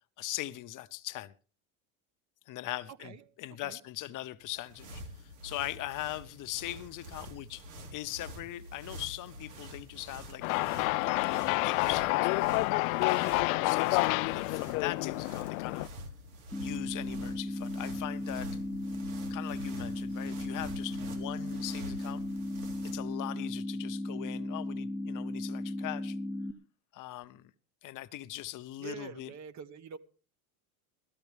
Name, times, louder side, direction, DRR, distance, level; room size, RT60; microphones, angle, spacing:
voice 1, 0.2-1.3 2.5-7.7 7.9-10.7 11.3-12.3 13.1-15.9 16.6-18.5 19.3-22.2 22.8-26.2 26.9-27.5 27.8-29.3, left 15 dB, 45° left, 0.8 m, -40 dB
sound 1, 4.4-23.2, equal, 90° right, 3.8 m, -47 dB
sound 2, 10.4-15.9, left 23 dB, 75° left, 0.5 m, -29 dB
sound 3, 16.5-26.5, left 1 dB, 5° left, 0.8 m, -36 dB
voice 2, 28.8-30.0, right 7 dB, 40° right, 1.3 m, -45 dB
17.5 x 13.5 x 3.4 m
supercardioid pair, 105°, 42 cm